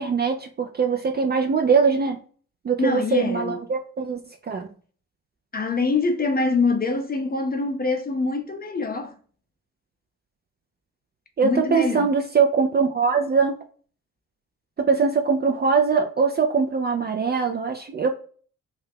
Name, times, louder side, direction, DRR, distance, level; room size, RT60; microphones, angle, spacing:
voice 1, 0.0-2.2 2.6-4.2 4.5-4.7 11.4-13.5 14.8-18.1, right 5 dB, 25° right, 0.5 m, -22 dB
voice 2, 2.8-3.6 5.5-9.1 11.4-12.1, left 3 dB, 25° left, 0.7 m, -24 dB
2.6 x 2.3 x 3.5 m
hypercardioid pair, 40°, 40 cm